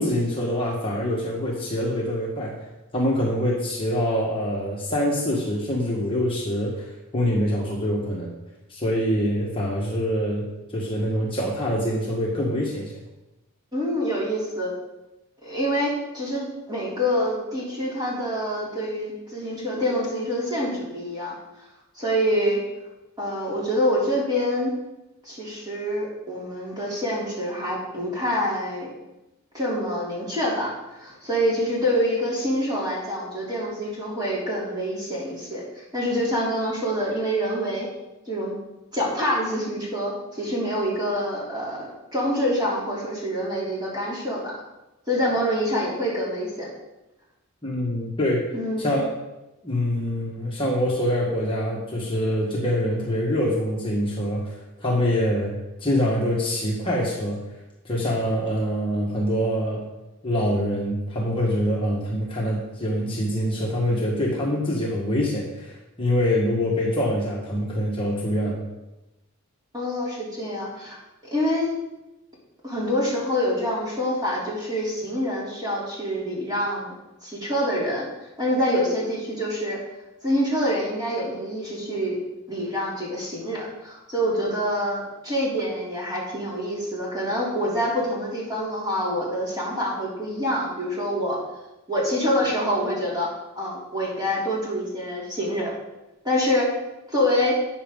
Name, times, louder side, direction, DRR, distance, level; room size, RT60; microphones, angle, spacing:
voice 1, 0.0-2.5 2.9-8.3 8.7-13.0 47.6-48.5 48.8-49.1 49.6-57.4 57.8-59.8 60.2-68.6, equal, 25° left, -4 dB, 1.5 m, -25 dB
voice 2, 13.7-14.7 15.4-21.3 21.9-22.6 23.2-24.7 25.2-28.9 29.5-37.9 38.3-38.6 38.9-44.5 45.1-46.7 48.5-48.8 69.7-71.0 71.3-71.7 72.6-76.9 77.2-78.1 78.4-79.8 80.2-82.2 82.5-91.4 91.9-93.3 93.5-95.7 96.2-96.7 97.1-97.6, equal, 20° right, -6 dB, 3.3 m, -26 dB
12.5 x 8.3 x 3.9 m, 0.99 s
head